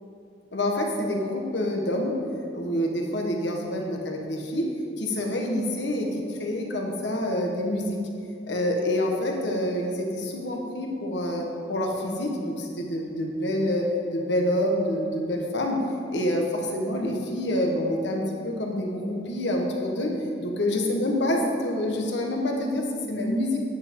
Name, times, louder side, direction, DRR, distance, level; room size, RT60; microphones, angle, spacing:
voice 1, 0.5-2.2 2.5-4.7 5.0-8.0 8.4-15.8 16.1-23.6, left 1 dB, 65° left, 1 dB, 1.2 m, -27 dB
10.0 x 7.3 x 3.7 m, 2.5 s
head